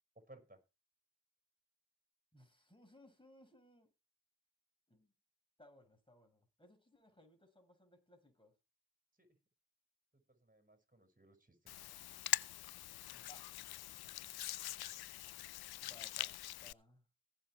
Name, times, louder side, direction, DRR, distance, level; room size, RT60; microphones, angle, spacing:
voice 1, 0.2-0.6 9.2-9.3 10.3-11.9, right 1 dB, 20° right, 5.6 m, -62 dB
voice 2, 2.3-3.9 4.9-5.1 5.6-8.5 13.1-13.5 15.8-17.1, left 1 dB, 10° left, 6.1 m, -64 dB
Hands, 11.7-16.7, left 15 dB, 60° left, 0.5 m, -43 dB
16.5 x 7.0 x 4.6 m
hypercardioid pair, 45°, 44 cm